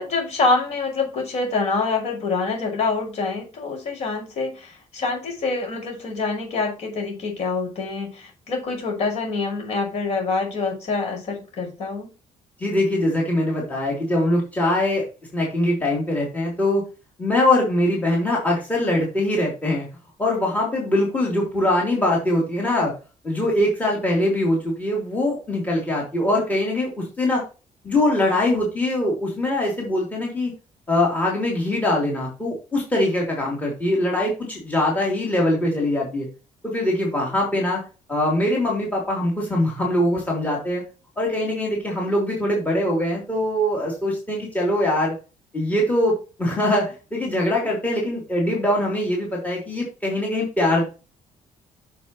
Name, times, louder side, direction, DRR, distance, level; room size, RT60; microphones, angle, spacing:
voice 1, 0.0-12.1, left 3 dB, 55° left, 5.7 m, -26 dB
voice 2, 12.6-15.0 15.3-16.8 17.2-19.9 20.2-22.9 23.2-27.4 27.8-30.5 30.9-36.3 36.6-37.8 38.1-40.8 41.2-45.1 45.5-50.8, left 1 dB, 10° left, 3.5 m, -22 dB
10.0 x 6.9 x 3.1 m
cardioid pair, 170°, 14 cm